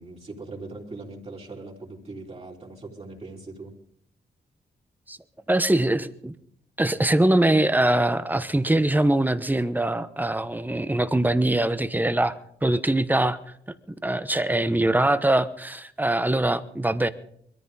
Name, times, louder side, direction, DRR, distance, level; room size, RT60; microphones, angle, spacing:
voice 1, 0.0-3.7, right 3 dB, 35° right, -3 dB, 3.5 m, -40 dB
voice 2, 5.5-6.3 6.8-12.3 12.6-13.4 14.0-17.1, right 1 dB, 10° right, 12 dB, 1.0 m, -22 dB
22.0 x 14.0 x 4.1 m, 0.67 s
cardioid pair, 80°, 17 cm